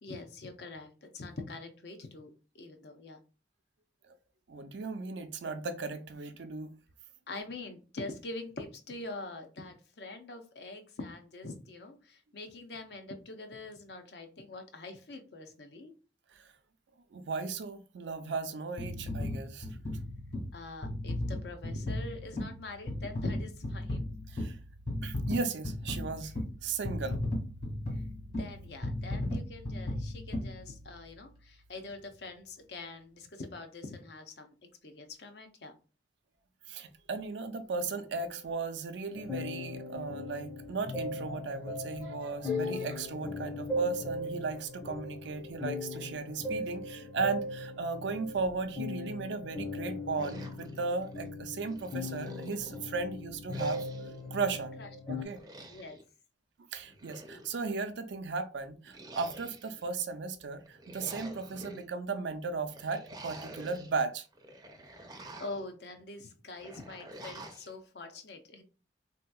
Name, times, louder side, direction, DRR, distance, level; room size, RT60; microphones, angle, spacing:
voice 1, 0.0-3.2 7.3-15.9 20.5-24.1 27.9-28.0 28.4-34.5 34.8-35.7 54.8-55.3 55.7-56.0 65.4-68.6, left 2 dB, 60° left, 0.6 m, -44 dB
voice 2, 4.5-6.7 16.3-16.5 17.1-19.7 24.3-24.6 25.0-26.3 26.6-27.2 36.7-53.8 54.3-54.8 55.1-55.4 56.7-64.3, right 4 dB, 75° right, 0.5 m, -36 dB
sound 1, 18.8-31.2 31.7-31.9, left 1 dB, 45° left, 1.4 m, -36 dB
sound 2, 39.1-55.2, left 2 dB, 20° left, 0.7 m, -38 dB
sound 3, 50.1-51.3 51.7-52.9 53.5-54.2 55.3-56.0 56.8-57.8 58.8-59.9 60.6-61.8 62.7-63.9 64.3-65.7 66.5-67.7, right 1 dB, 20° right, 0.5 m, -49 dB
3.4 x 2.8 x 2.3 m
head